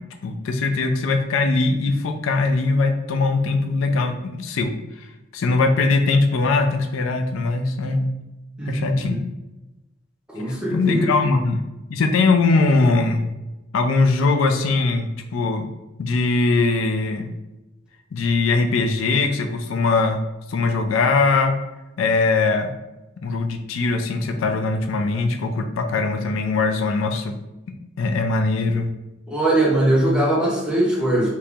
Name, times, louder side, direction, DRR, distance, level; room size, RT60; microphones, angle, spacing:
voice 1, 0.0-5.1 5.3-8.1 8.7-9.2 10.4-11.6 11.9-13.3 13.7-15.7 16.0-17.3 18.1-20.2 20.5-21.5 22.0-22.7 23.2-27.4 28.0-28.9, left 3 dB, 80° left, 5 dB, 0.4 m, -21 dB
voice 2, 8.6-9.2 10.3-11.3 29.3-31.3, right 1 dB, 5° right, -5 dB, 1.0 m, -21 dB
3.0 x 2.8 x 3.4 m, 1.0 s
head